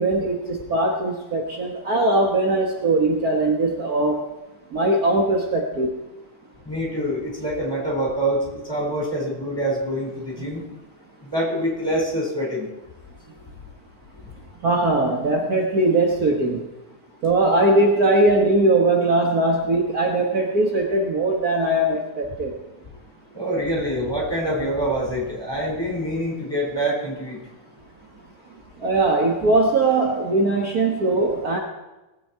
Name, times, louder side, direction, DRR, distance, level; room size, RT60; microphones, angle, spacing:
voice 1, 0.0-4.2 4.7-5.9 14.6-16.6 17.2-22.5 28.8-31.6, right 2 dB, 60° right, 0 dB, 0.9 m, -20 dB
voice 2, 6.6-10.6 11.2-12.7 23.3-27.4, right 1 dB, 5° left, -3 dB, 4.6 m, -25 dB
18.5 x 8.8 x 4.6 m, 1.0 s
omnidirectional pair, 3.6 m